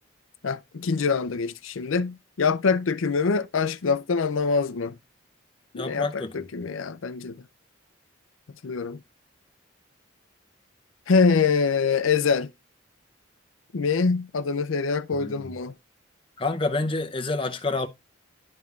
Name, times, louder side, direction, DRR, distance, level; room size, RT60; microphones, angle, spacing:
voice 1, 0.4-4.9 5.7-7.4 8.6-9.0 11.1-12.5 13.7-15.7, left 5 dB, 80° left, 0.5 m, -24 dB
voice 2, 5.7-6.3 15.1-15.4 16.4-17.9, left 3 dB, 25° left, 0.7 m, -28 dB
10.5 x 5.7 x 2.4 m
head